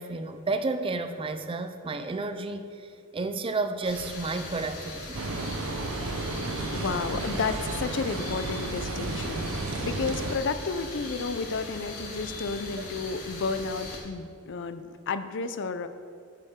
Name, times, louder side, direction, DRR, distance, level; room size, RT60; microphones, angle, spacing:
voice 1, 0.0-2.9 3.1-5.2, right 3 dB, 25° right, 9 dB, 0.4 m, -31 dB
sound 1, 3.8-14.0, left 2 dB, 75° left, 2.5 m, -40 dB
sound 2, 5.1-10.4, right 2 dB, 65° right, 0.7 m, -33 dB
voice 2, 6.7-15.9, left 4 dB, 55° left, 11 dB, 0.5 m, -32 dB
9.9 x 8.5 x 3.7 m, 2.4 s
head